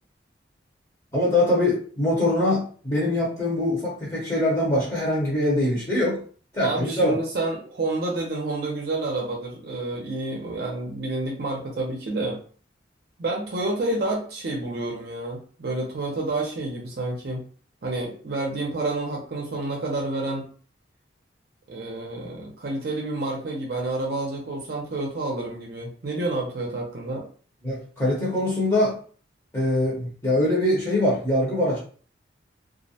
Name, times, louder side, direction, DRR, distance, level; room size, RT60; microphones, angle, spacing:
voice 1, 1.1-6.2 6.5-7.2 27.6-28.9 29.5-31.8, left 1 dB, 20° left, -6 dB, 0.7 m, -23 dB
voice 2, 6.6-12.4 13.2-17.4 17.8-20.4 21.7-27.2, right 2 dB, 55° right, -1 dB, 0.5 m, -29 dB
2.4 x 2.1 x 2.7 m, 0.42 s
head